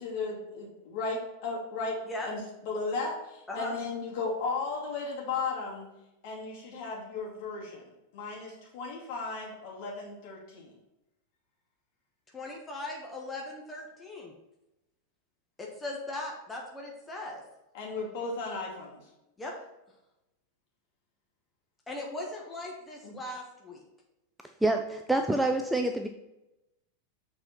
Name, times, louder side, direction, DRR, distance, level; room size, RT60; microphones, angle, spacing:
voice 1, 0.0-2.0 2.2-5.9 6.2-7.9 8.1-10.7 17.7-19.0 23.0-23.2, left 3 dB, 45° left, -2 dB, 2.5 m, -35 dB
voice 2, 12.3-14.3 15.6-17.4 19.4-19.5 21.9-23.8, left 2 dB, 15° left, -1 dB, 1.3 m, -39 dB
voice 3, 24.6-26.1, right 2 dB, 5° right, 4 dB, 0.5 m, -27 dB
7.5 x 4.3 x 4.4 m, 0.93 s
figure-of-eight pair, 90°, 0 cm